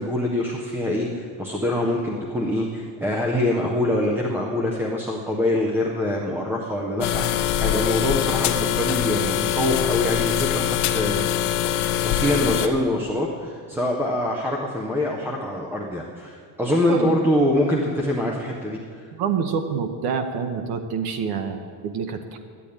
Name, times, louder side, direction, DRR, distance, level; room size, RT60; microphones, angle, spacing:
voice 1, 0.0-11.3 12.0-19.1, left 1 dB, 5° right, -1 dB, 0.4 m, -24 dB
sound 1, 7.0-12.7, left 11 dB, 80° left, 1.0 m, -23 dB
voice 2, 19.2-22.4, right 6 dB, 50° right, 8 dB, 0.9 m, -27 dB
10.5 x 8.6 x 9.8 m, 2.1 s
cardioid pair, 175°, 49 cm